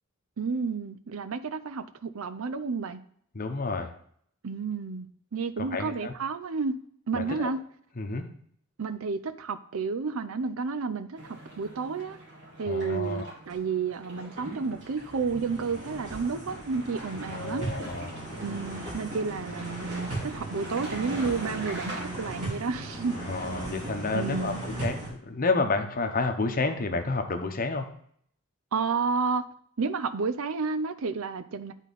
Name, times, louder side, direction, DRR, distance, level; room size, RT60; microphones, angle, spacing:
voice 1, 0.4-3.0 4.4-6.7 7.1-7.6 8.8-12.2 12.6-17.7 18.4-23.1 24.1-24.6 28.7-29.4 29.8-31.7, right 4 dB, 75° right, 13 dB, 0.5 m, -31 dB
voice 2, 3.3-3.9 5.7-6.1 7.1-7.5 8.0-8.3 12.7-13.3 17.3-18.3 23.2-27.9, left 3 dB, 40° left, 6 dB, 0.8 m, -30 dB
sound 1, 11.2-23.7, right 1 dB, 60° right, 2.2 m, -44 dB
sound 2, 13.5-13.7 14.1-25.1, right 2 dB, 35° right, 3.3 m, -38 dB
10.0 x 4.1 x 4.0 m, 0.64 s
head